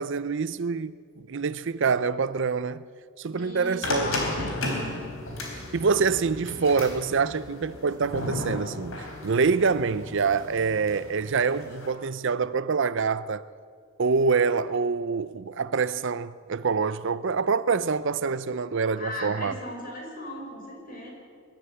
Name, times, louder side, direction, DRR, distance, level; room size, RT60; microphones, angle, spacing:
voice 1, 0.0-2.9 3.2-4.3 5.5-13.4 14.0-19.6, right 5 dB, 60° right, 0.6 m, -26 dB
voice 2, 3.4-4.9 19.0-21.1, left 1 dB, 40° left, 5.1 m, -38 dB
sound 1, 3.8-11.9, left 2 dB, 70° left, 4.1 m, -34 dB
22.5 x 13.0 x 9.7 m
head